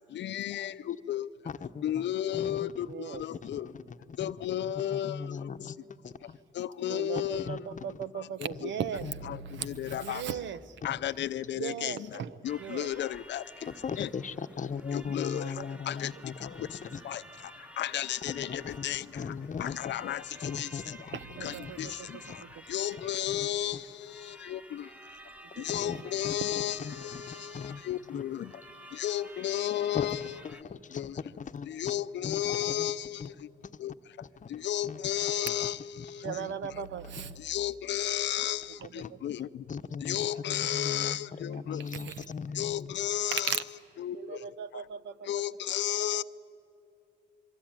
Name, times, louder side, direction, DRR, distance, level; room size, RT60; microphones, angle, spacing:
voice 1, 0.1-1.3 1.8-2.9 3.1-3.7 4.2-5.2 6.6-7.6 9.6-10.2 10.8-12.0 12.4-13.4 14.0-14.1 14.9-16.1 17.0-17.2 17.8-19.0 19.6-20.2 20.5-20.7 21.4-21.9 22.7-23.8 24.2-24.8 25.6-28.5 29.0-30.3 30.9-31.1 31.7-33.3 33.8-33.9 34.5-35.8 37.4-38.7 38.9-39.5 40.0-41.8 42.6-43.5 44.0-44.2 45.3-46.2, left 12 dB, 65° left, 15 dB, 0.6 m, -33 dB
voice 2, 1.4-2.0 2.3-2.7 3.4-4.3 4.6-5.8 6.0-6.4 7.4-7.8 9.5-10.0 13.6-17.0 18.3-18.9 19.1-19.9 20.4-21.2 21.8-21.9 22.3-22.4 23.0-23.8 25.7-26.4 26.8-27.8 28.1-28.2 29.9-30.2 30.4-31.7 32.2-32.9 33.2-33.3 34.4-35.1 36.0-36.3 39.0-39.1 39.7-42.9, left 6 dB, 40° left, 10 dB, 0.9 m, -39 dB
voice 3, 2.8-3.2 6.3-6.4 6.9-10.8 11.5-12.9 15.3-15.8 16.1-16.2 21.1-22.8 25.4-26.1 36.1-37.5 38.6-39.3 41.5-42.3 43.3-43.6 44.1-45.4, right 8 dB, 70° right, 14 dB, 1.0 m, -38 dB
sound 1, 12.4-30.6, right 1 dB, 5° right, 1.3 m, -51 dB
26.5 x 23.5 x 9.1 m, 2.9 s
cardioid pair, 90°, 20 cm